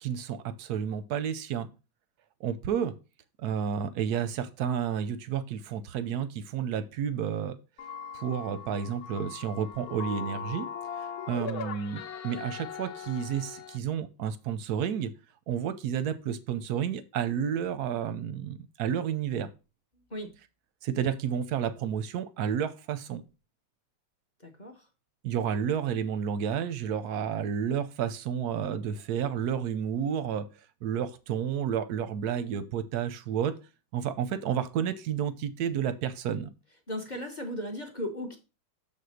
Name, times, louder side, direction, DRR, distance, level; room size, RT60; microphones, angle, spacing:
voice 1, 0.0-1.7 2.4-2.9 3.4-7.6 8.1-10.7 11.3-15.1 15.5-19.5 20.8-23.2 25.2-30.5 30.8-33.5 33.9-36.5, right 8 dB, 65° right, 12 dB, 1.0 m, -31 dB
sound 1, 7.8-13.8, left 7 dB, 65° left, 0.9 m, -40 dB
voice 2, 24.4-24.9 36.9-38.4, left 1 dB, 30° left, 3 dB, 0.8 m, -36 dB
7.0 x 4.3 x 6.4 m, 0.31 s
omnidirectional pair, 2.4 m